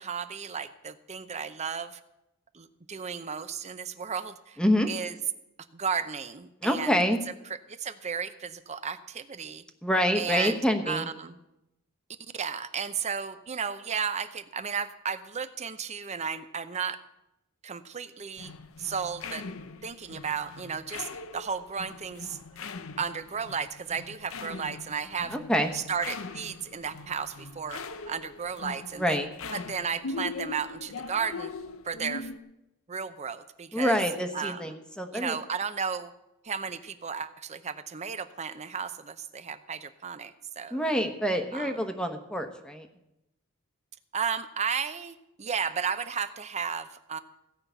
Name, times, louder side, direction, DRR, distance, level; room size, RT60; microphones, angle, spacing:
voice 1, 0.0-2.0 2.5-4.6 4.9-5.1 5.7-7.0 7.5-9.6 10.1-10.6 10.9-11.4 12.3-17.0 17.6-18.5 18.8-19.5 19.8-22.4 23.0-25.4 25.7-31.5 31.8-32.3 32.9-34.0 34.3-34.8 35.1-36.1 36.4-40.8 41.5-41.8 44.1-47.2, right 6 dB, 35° right, 11 dB, 0.7 m, -34 dB
voice 2, 4.6-4.9 6.6-7.2 9.8-11.1 25.3-25.7 29.0-29.3 33.7-35.4 40.7-42.9, equal, 5° left, 6 dB, 1.1 m, -26 dB
sound 1, 18.4-32.4, left 4 dB, 75° left, 0.7 m, -41 dB
16.0 x 5.7 x 8.0 m, 0.90 s
head